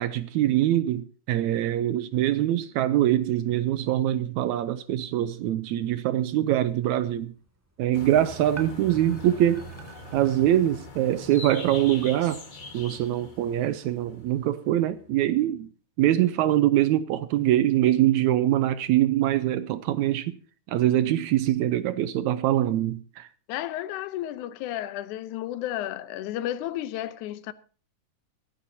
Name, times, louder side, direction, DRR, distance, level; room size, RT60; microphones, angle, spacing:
voice 1, 0.0-7.3 7.8-9.7 10.1-12.4 12.7-15.7 16.0-20.4 20.7-23.3, right 13 dB, 75° right, 2.0 m, -23 dB
sound 1, 6.7-11.8, right 5 dB, 10° right, 0.8 m, -49 dB
sound 2, 7.9-15.1, left 1 dB, 45° left, 0.6 m, -42 dB
voice 2, 23.5-27.5, left 13 dB, 85° left, 2.3 m, -32 dB
25.0 x 10.5 x 2.7 m
omnidirectional pair, 3.4 m